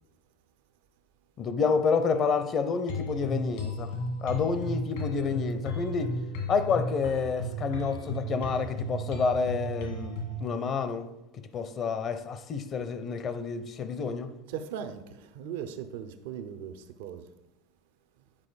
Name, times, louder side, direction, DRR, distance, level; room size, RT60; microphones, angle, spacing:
voice 1, 1.4-3.9 4.2-6.2 6.5-14.3, left 5 dB, 40° left, 0.6 m, -29 dB
sound 1, 2.9-10.4, equal, 80° left, 2.1 m, -34 dB
voice 2, 14.5-17.3, right 8 dB, 75° right, 0.6 m, -38 dB
8.9 x 4.5 x 4.1 m
supercardioid pair, 105°, 0 cm